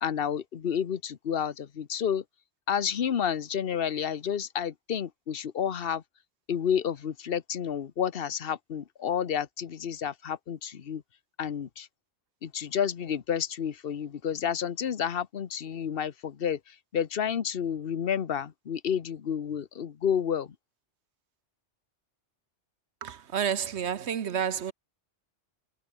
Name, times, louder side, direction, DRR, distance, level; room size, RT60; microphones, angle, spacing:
voice 1, 0.0-2.2 2.7-6.0 6.5-11.0 11.4-11.9 12.4-20.5, left 8 dB, 55° left, 1.1 m, -30 dB
voice 2, 23.0-24.7, right 8 dB, 70° right, 1.2 m, -30 dB
omnidirectional pair, 1.2 m